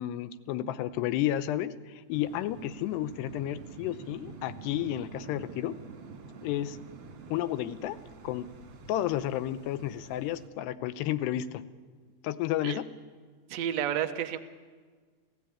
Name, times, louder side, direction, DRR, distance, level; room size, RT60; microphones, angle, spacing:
voice 1, 0.0-5.8 6.4-6.8 7.3-8.0 8.2-8.5 8.9-11.6 12.2-12.9, left 12 dB, 90° left, 13 dB, 2.9 m, -32 dB
sound 1, 2.1-10.5, right 5 dB, 45° right, 2.0 m, -47 dB
voice 2, 13.5-14.4, right 10 dB, 85° right, 7 dB, 1.5 m, -30 dB
29.0 x 15.5 x 8.7 m, 1.5 s
omnidirectional pair, 4.7 m